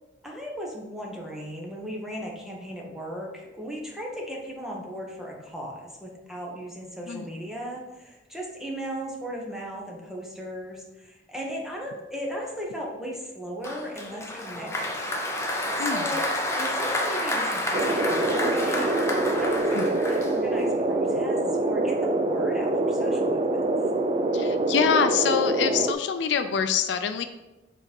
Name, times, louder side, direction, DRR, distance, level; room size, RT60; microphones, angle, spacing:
voice 1, 0.2-15.0 15.9-19.0 19.3-23.7, equal, 5° right, -2 dB, 1.1 m, -36 dB
Applause, 13.6-20.7, left 1 dB, 15° left, 0.7 m, -29 dB
voice 2, 15.8-16.1 19.7-19.9 24.3-27.2, left 7 dB, 70° left, 8 dB, 0.4 m, -25 dB
sound 1, 17.7-25.9, right 2 dB, 30° right, 0.4 m, -25 dB
4.9 x 4.0 x 5.2 m, 1.0 s
head